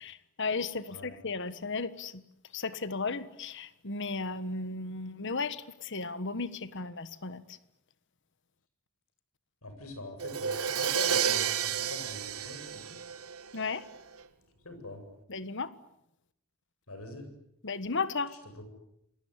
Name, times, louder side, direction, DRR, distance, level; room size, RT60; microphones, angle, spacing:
voice 1, 0.0-2.2 2.5-7.6 13.5-13.9 15.3-15.7 17.6-18.3, left 4 dB, 55° left, 1.4 m, -35 dB
voice 2, 9.6-13.0 14.6-15.0 16.9-17.3 18.6-18.7, left 2 dB, 75° left, 7.9 m, -43 dB
Crash cymbal, 10.2-14.0, right 8 dB, 85° right, 1.8 m, -31 dB
27.5 x 22.0 x 9.8 m
head